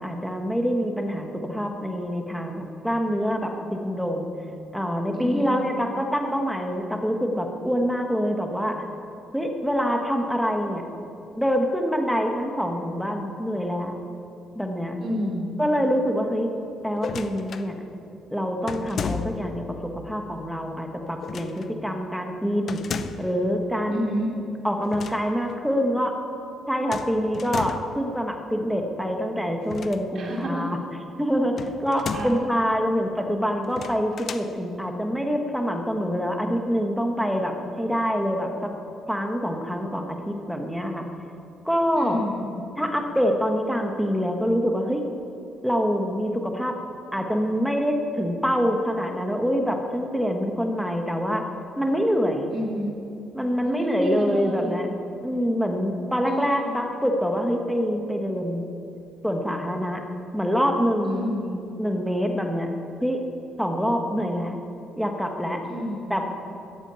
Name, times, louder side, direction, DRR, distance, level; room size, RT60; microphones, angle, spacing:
voice 1, 0.0-4.3 4.7-8.8 9.3-10.8 11.4-14.0 14.5-15.0 15.6-16.5 16.8-17.8 18.3-22.8 23.2-24.1 24.6-26.1 26.7-30.8 31.2-38.7 39.1-41.1 41.6-42.2 42.8-45.0 45.6-46.8 47.1-51.4 51.8-52.5 53.3-54.9 55.2-58.7 59.2-60.0 60.3-61.3 61.8-62.7 63.0-63.2 63.6-64.6 65.0-65.6 66.1-66.2, equal, ahead, 3 dB, 1.3 m, -25 dB
voice 2, 5.1-5.5 15.0-15.5 23.9-24.3 30.1-30.7 32.1-32.3 42.0-42.5 52.5-52.9 53.6-54.8 56.2-56.8 61.0-61.6 65.6-66.1, equal, 40° right, -2 dB, 2.9 m, -30 dB
sound 1, 17.0-17.7 18.7-19.6 21.2-21.7 22.7-23.4 24.8-25.2 25.5-25.6 26.9-28.0 29.6-30.4 31.6-32.5 33.6-34.5, left 6 dB, 40° left, 0.6 m, -34 dB
14.5 x 9.9 x 8.8 m, 2.7 s
cardioid pair, 160°, 0 cm